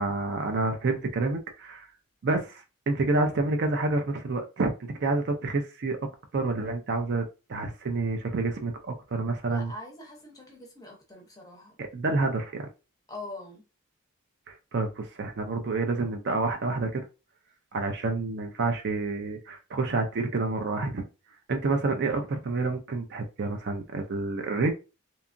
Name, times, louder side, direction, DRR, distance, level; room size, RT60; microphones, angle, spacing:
voice 1, 0.0-1.9 2.2-4.7 5.0-6.0 6.3-9.7 11.8-12.7 14.5-17.1 17.7-21.1 21.5-24.7, right 3 dB, 50° right, 0.4 m, -28 dB
voice 2, 9.5-11.7 13.1-13.6, left 2 dB, 15° left, 0.7 m, -43 dB
2.8 x 2.3 x 2.5 m
head